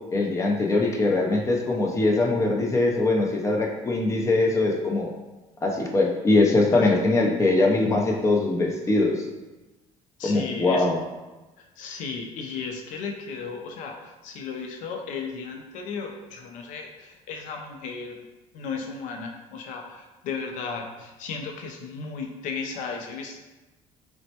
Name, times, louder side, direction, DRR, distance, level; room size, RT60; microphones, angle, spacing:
voice 1, 0.0-5.1 5.6-9.2 10.2-11.0, left 2 dB, 25° left, 0 dB, 0.5 m, -22 dB
voice 2, 10.2-10.8 11.6-18.2 18.5-23.4, left 5 dB, 75° left, 3 dB, 0.4 m, -35 dB
4.1 x 2.1 x 2.8 m, 1.1 s
cardioid pair, 120°, 13 cm